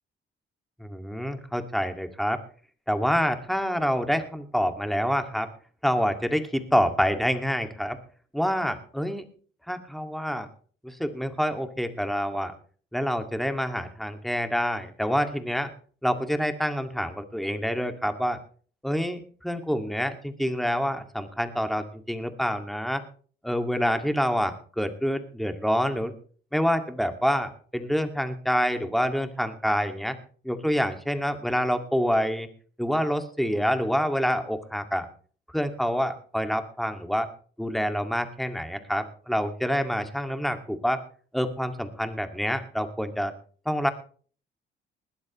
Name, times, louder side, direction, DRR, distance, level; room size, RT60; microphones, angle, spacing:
voice 1, 0.8-2.4 2.9-5.5 5.8-8.0 8.3-9.3 9.7-10.5 10.8-12.5 12.9-15.7 16.0-18.4 18.8-23.0 23.4-26.1 26.5-30.2 30.4-32.5 32.8-35.1 35.5-37.3 37.6-41.0 41.3-43.3 43.7-43.9, equal, ahead, 7 dB, 2.1 m, -27 dB
20.5 x 12.0 x 3.1 m, 0.44 s
cardioid pair, 90°, 20 cm